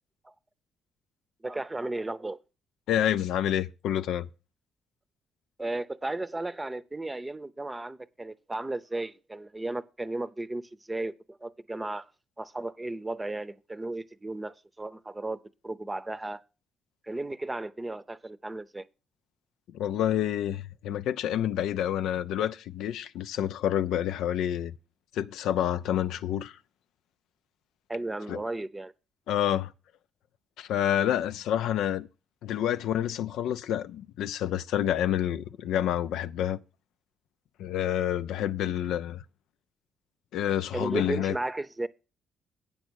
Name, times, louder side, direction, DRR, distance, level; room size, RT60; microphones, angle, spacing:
voice 1, 1.4-2.4 5.6-12.1 12.4-16.4 17.1-18.8 27.9-28.9 40.7-41.9, right 2 dB, 15° right, 0.7 m, -34 dB
voice 2, 2.9-4.3 19.7-24.7 25.1-26.6 28.3-28.4 29.3-29.7 30.6-32.1 32.4-36.6 37.6-39.2 40.3-41.3, left 11 dB, 85° left, 0.4 m, -28 dB
8.7 x 7.1 x 6.3 m
cardioid pair, 90°, 0 cm